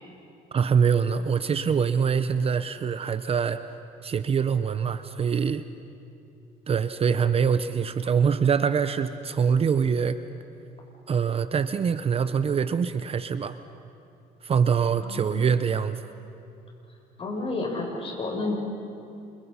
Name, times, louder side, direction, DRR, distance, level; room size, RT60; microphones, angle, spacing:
voice 1, 0.5-3.6 4.0-5.6 6.7-10.2 11.1-13.6 14.4-16.0, right 6 dB, 35° right, 12 dB, 0.7 m, -24 dB
voice 2, 15.0-15.5 17.2-18.5, left 3 dB, 35° left, 0 dB, 6.9 m, -31 dB
30.0 x 27.0 x 5.6 m, 2.7 s
cardioid pair, 110°, 17 cm